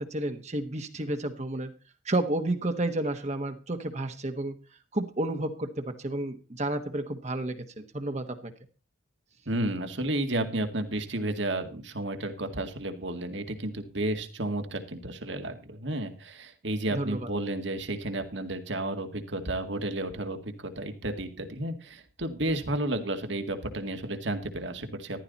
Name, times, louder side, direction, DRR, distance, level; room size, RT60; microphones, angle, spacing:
voice 1, 0.0-1.7 2.0-4.5 4.9-8.5 16.9-17.3, right 1 dB, 35° right, 6 dB, 1.3 m, -31 dB
voice 2, 9.5-25.2, right 1 dB, 65° right, 7 dB, 2.1 m, -32 dB
14.5 x 12.0 x 4.1 m, 0.34 s
head